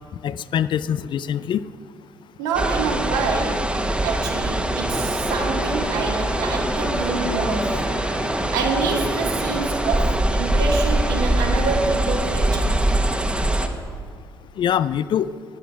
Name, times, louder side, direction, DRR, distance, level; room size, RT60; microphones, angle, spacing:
voice 1, 0.2-1.6 14.6-15.3, left 9 dB, 50° left, 16 dB, 0.4 m, -23 dB
voice 2, 2.4-3.7 4.0-7.9 8.5-12.9, right 4 dB, 70° right, 0 dB, 2.0 m, -26 dB
sound 1, 2.5-13.7, right 1 dB, 10° right, 1.4 m, -23 dB
sound 2, 4.9-10.2, left 1 dB, 20° left, 1.9 m, -33 dB
15.0 x 10.0 x 5.8 m, 2.1 s
figure-of-eight pair, 45°, 11 cm